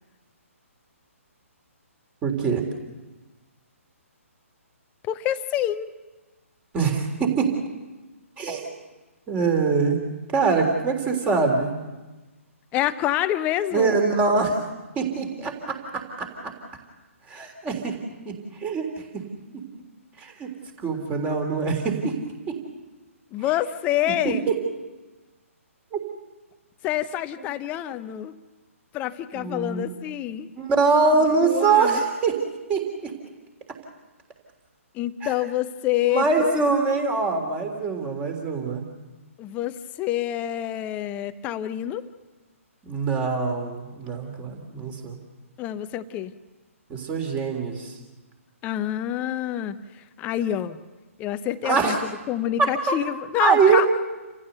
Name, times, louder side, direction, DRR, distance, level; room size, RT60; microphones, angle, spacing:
voice 1, 2.2-2.6 6.7-7.5 8.4-8.7 9.3-10.0 10.3-11.8 13.7-14.6 15.0-16.5 17.3-18.0 18.2-18.9 20.2-20.5 20.8-22.2 22.5-22.6 24.2-24.5 25.9-26.0 27.4-27.5 29.3-29.9 30.6-32.4 32.7-33.2 35.2-35.3 36.1-38.8 42.8-45.2 46.9-48.0 51.6-52.0 52.6-53.0 53.4-53.9, right 4 dB, 15° right, 4 dB, 3.4 m, -23 dB
voice 2, 5.1-5.9 12.7-14.0 23.3-24.4 26.8-28.4 28.9-30.5 31.4-32.0 34.9-36.5 39.4-42.1 45.6-46.3 48.6-50.8 51.2-53.9, left 12 dB, 20° left, 12 dB, 0.8 m, -27 dB
29.5 x 15.0 x 6.9 m, 1.2 s
figure-of-eight pair, 135°, 8 cm